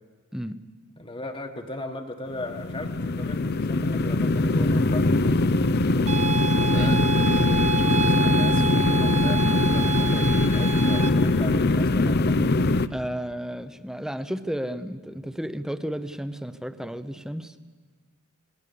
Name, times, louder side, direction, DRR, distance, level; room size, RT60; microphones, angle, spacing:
voice 1, 1.0-5.2 6.7-12.4, left 2 dB, 25° left, 4 dB, 1.4 m, -37 dB
sound 1, 2.3-12.9, left 2 dB, 50° left, 0.7 m, -22 dB
sound 2, 6.1-11.1, right 5 dB, 35° right, 1.2 m, -28 dB
voice 2, 6.6-7.0 12.9-17.6, equal, 5° right, 11 dB, 0.8 m, -32 dB
28.0 x 20.0 x 6.9 m, 1.5 s
head